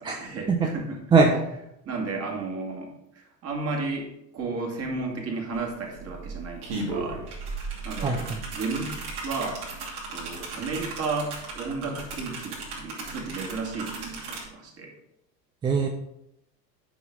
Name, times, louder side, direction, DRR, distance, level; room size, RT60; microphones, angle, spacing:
voice 1, 0.0-1.0 1.8-7.2 7.8-8.9 9.2-9.7 10.1-14.9, right 3 dB, 30° right, 0 dB, 2.2 m, -33 dB
voice 2, 1.1-1.4 8.0-8.4 15.6-15.9, right 4 dB, 10° right, 2 dB, 0.4 m, -21 dB
sound 1, 5.5-5.6 5.9-14.5, right 3 dB, 50° right, 2.8 m, -36 dB
10.0 x 5.7 x 3.7 m, 0.80 s
figure-of-eight pair, 80°, 48 cm